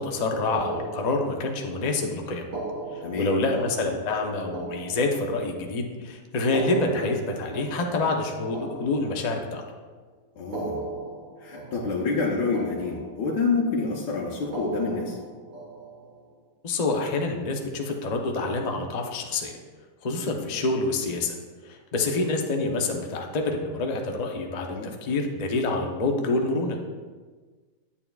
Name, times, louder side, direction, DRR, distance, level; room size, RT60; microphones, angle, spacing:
voice 1, 0.0-2.5 2.9-9.6 16.6-19.5 20.0-21.4 21.6-24.8 25.0-26.8, left 2 dB, 50° left, 2 dB, 0.4 m, -27 dB
sound 1, 0.5-1.8 2.4-5.7 6.4-9.7 10.4-12.3 12.5-13.6 14.4-16.2, right 2 dB, 50° right, 1.8 m, -38 dB
voice 2, 10.4-10.8 11.4-15.2 24.7-24.9, left 4 dB, 75° left, -4 dB, 1.4 m, -27 dB
9.2 x 8.4 x 2.3 m, 1.4 s
omnidirectional pair, 1.8 m